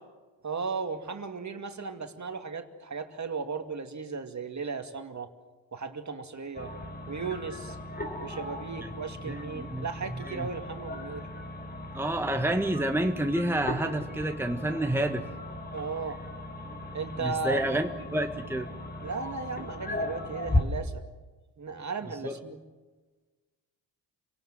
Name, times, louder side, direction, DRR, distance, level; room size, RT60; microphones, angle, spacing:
voice 1, 0.4-5.3 5.7-6.7 7.1-7.8 8.2-11.3 15.7-16.2 16.9-17.6 19.0-21.0 21.6-22.6, right 4 dB, 35° right, 6 dB, 2.4 m, -36 dB
sound 1, 6.5-20.6, left 1 dB, 20° left, 4.3 m, -37 dB
voice 2, 9.3-9.8 10.3-10.5 11.9-15.2 17.2-18.7 22.2-22.4, right 1 dB, 5° right, 4 dB, 1.7 m, -29 dB
29.0 x 17.5 x 7.7 m, 1.3 s
supercardioid pair, 55°, 46 cm